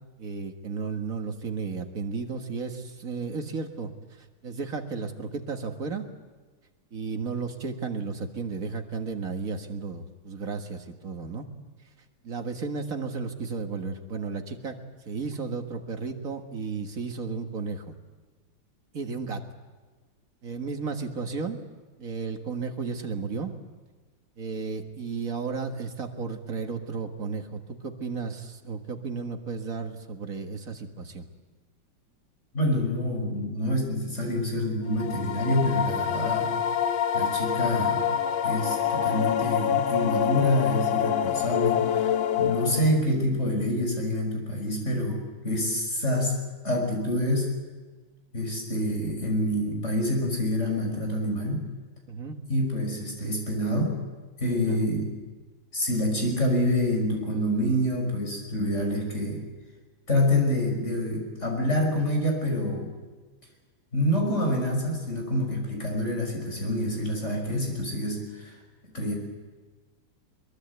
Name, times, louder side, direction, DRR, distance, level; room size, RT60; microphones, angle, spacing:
voice 1, 0.2-3.9 4.4-6.1 6.9-11.5 12.2-14.8 15.1-17.8 18.9-19.4 20.4-21.6 22.0-23.5 24.4-31.3 36.2-36.3 52.1-52.4 54.6-54.9, right 5 dB, 45° right, 4 dB, 2.0 m, -33 dB
voice 2, 32.5-36.6 37.1-38.1 38.4-46.4 46.6-47.5 48.3-51.6 52.5-54.0 54.4-55.1 55.7-59.4 60.1-62.9 63.9-68.5 68.8-69.2, left 1 dB, 35° left, 1 dB, 6.3 m, -27 dB
sound 1, 34.9-43.1, left 9 dB, 75° left, 1.7 m, -26 dB
23.0 x 22.5 x 8.1 m, 1.3 s
omnidirectional pair, 2.2 m